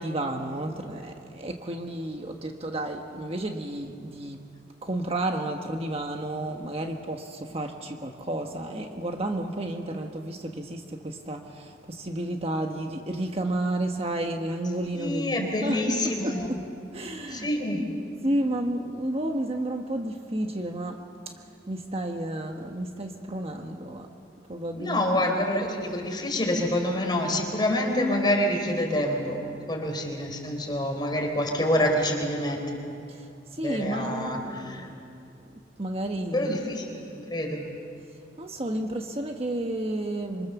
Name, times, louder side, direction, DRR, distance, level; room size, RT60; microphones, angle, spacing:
voice 1, 0.0-4.4 4.8-16.6 16.9-17.5 18.2-21.0 21.7-24.1 24.5-25.1 33.1-35.0 35.4-36.5 38.4-40.5, right 1 dB, 30° right, 3 dB, 1.3 m, -31 dB
voice 2, 14.9-16.5 17.3-17.9 24.7-32.7 33.6-34.9 36.3-37.7, left 1 dB, 25° left, 2 dB, 4.1 m, -27 dB
26.5 x 25.5 x 7.1 m, 2.5 s
head